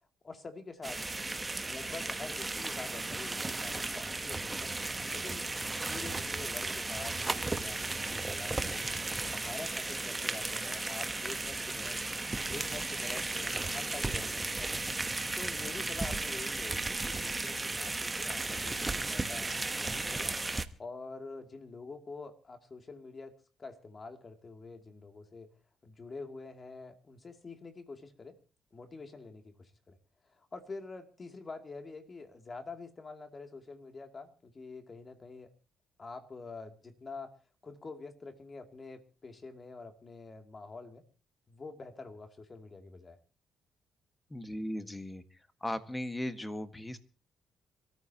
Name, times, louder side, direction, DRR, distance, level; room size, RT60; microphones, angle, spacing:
voice 1, 0.2-1.0 1.6-4.7 5.1-5.5 5.8-8.9 9.3-12.0 12.3-14.8 15.3-20.3 20.8-25.5 25.8-28.4 28.7-30.0 30.2-35.5 36.0-37.3 37.6-41.0 41.5-43.2, left 3 dB, 35° left, 6 dB, 2.7 m, -46 dB
sound 1, 0.8-20.7, right 2 dB, 20° right, 1.1 m, -35 dB
voice 2, 44.3-45.2 45.6-47.0, left 1 dB, 10° left, 10 dB, 1.6 m, -37 dB
26.5 x 14.0 x 2.9 m, 0.36 s
cardioid pair, 90°, 0 cm